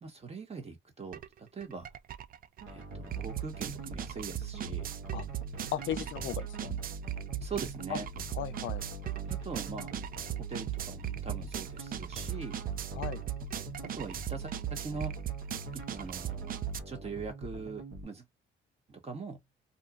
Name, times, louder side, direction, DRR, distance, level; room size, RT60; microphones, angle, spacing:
voice 1, 0.0-1.9 2.7-4.9 7.4-8.1 9.3-9.9 10.5-12.6 13.8-15.1 15.7-16.5 16.9-18.2 18.9-19.4, right 4 dB, 30° right, 1.3 m, -42 dB
sound 1, 1.1-1.3 1.6-16.8, right 11 dB, 45° right, 0.4 m, -38 dB
sound 2, 2.6-18.0, right 1 dB, 80° right, 1.1 m, -45 dB
voice 2, 5.7-6.8 7.9-8.0 8.3-8.8 12.9-13.2, left 12 dB, 75° left, 0.4 m, -36 dB
2.6 x 2.4 x 2.5 m
cardioid pair, 90°, 20 cm